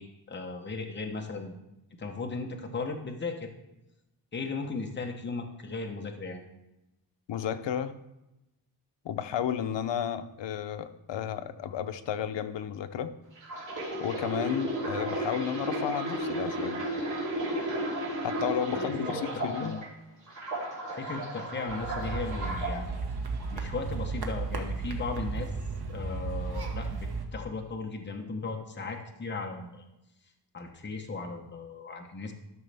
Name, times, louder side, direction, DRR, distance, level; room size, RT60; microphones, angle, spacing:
voice 1, 0.0-1.5 2.0-3.5 4.3-6.4 18.7-19.8 21.0-23.0 23.5-25.5 25.9-29.8 30.5-32.3, left 3 dB, 25° left, 3 dB, 0.9 m, -37 dB
voice 2, 7.3-7.9 9.0-13.1 14.0-16.8 18.2-19.8, left 9 dB, 80° left, 10 dB, 0.7 m, -32 dB
sound 1, 13.4-19.9 20.3-22.7 23.4-23.6, right 1 dB, 45° right, 2.9 m, -34 dB
sound 2, 21.7-27.3, right 4 dB, 60° right, 1.1 m, -34 dB
12.5 x 6.2 x 3.4 m, 0.93 s
wide cardioid pair, 170°, 43 cm